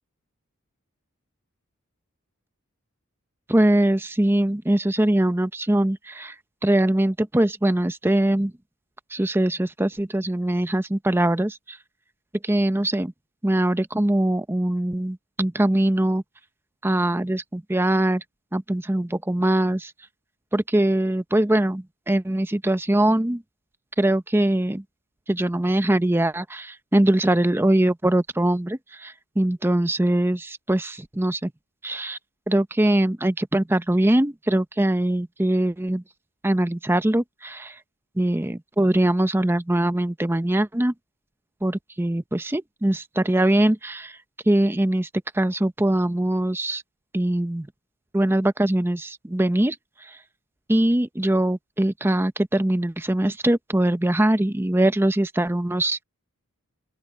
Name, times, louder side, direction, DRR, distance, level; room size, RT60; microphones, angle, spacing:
voice 1, 3.5-6.4 6.6-8.5 9.1-11.8 12.4-13.1 13.4-16.2 16.8-18.2 18.5-19.9 20.5-23.4 24.0-24.8 25.3-31.5 31.8-32.2 32.5-36.0 36.4-37.8 38.2-40.9 41.6-44.2 44.5-45.1 45.3-46.8 47.1-47.7 48.1-49.8 50.0-50.2 50.7-56.0, right 1 dB, 10° right, 0.6 m, -22 dB
open air
head